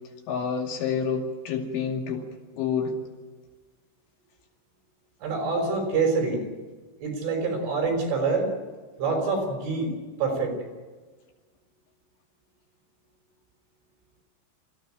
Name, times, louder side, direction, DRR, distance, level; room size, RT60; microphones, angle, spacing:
voice 1, 0.3-2.3 2.5-3.0, left 6 dB, 75° left, 1 dB, 4.8 m, -28 dB
voice 2, 5.2-6.5 7.0-8.5 9.0-9.9 10.2-10.6, right 4 dB, 75° right, 2 dB, 7.8 m, -26 dB
24.5 x 15.5 x 9.1 m, 1.4 s
omnidirectional pair, 5.5 m